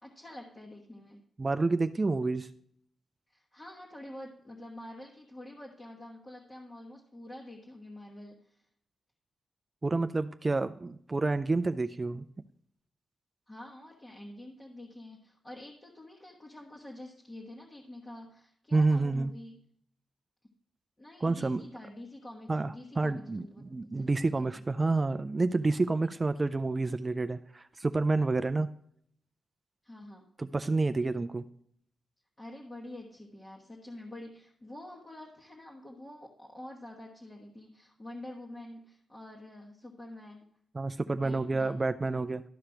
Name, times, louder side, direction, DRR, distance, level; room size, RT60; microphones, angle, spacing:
voice 1, 0.0-1.2 3.3-8.6 13.5-19.5 21.0-24.4 29.8-30.3 32.4-40.5 41.1-41.8, left 1 dB, 15° left, -2 dB, 1.2 m, -47 dB
voice 2, 1.4-2.5 9.8-12.2 18.7-19.3 21.2-21.6 22.5-28.7 30.4-31.4 40.7-42.4, right 3 dB, 20° right, 11 dB, 0.4 m, -29 dB
12.5 x 5.0 x 5.8 m, 0.64 s
wide cardioid pair, 150°, 0 cm